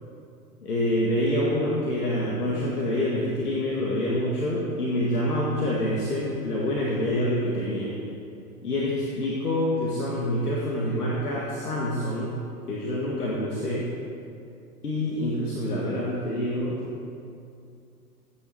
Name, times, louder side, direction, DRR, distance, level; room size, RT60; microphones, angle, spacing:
voice 1, 0.6-7.9 8.6-12.4 12.7-13.9 14.8-16.8, left 1 dB, 80° left, -4 dB, 2.1 m, -26 dB
14.0 x 9.7 x 4.6 m, 2.5 s
figure-of-eight pair, 105°, 45 cm